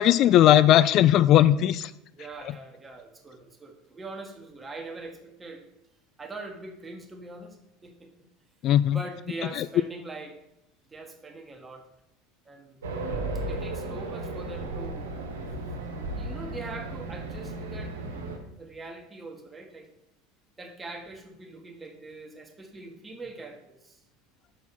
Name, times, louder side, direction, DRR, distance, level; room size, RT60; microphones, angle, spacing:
voice 1, 0.0-1.9 8.6-9.0 9.5-9.7, left 12 dB, 50° left, 16 dB, 0.3 m, -18 dB
voice 2, 2.1-5.6 6.2-8.1 8.9-10.4 10.9-11.9 12.4-12.8 13.4-15.2 16.2-18.0 18.6-19.9 20.6-24.0, right 3 dB, 20° right, 4 dB, 1.5 m, -42 dB
Race car auto racing, 12.8-18.4, right 2 dB, 90° right, 1.4 m, -34 dB
6.1 x 5.8 x 5.8 m, 0.84 s
hypercardioid pair, 85°, 0 cm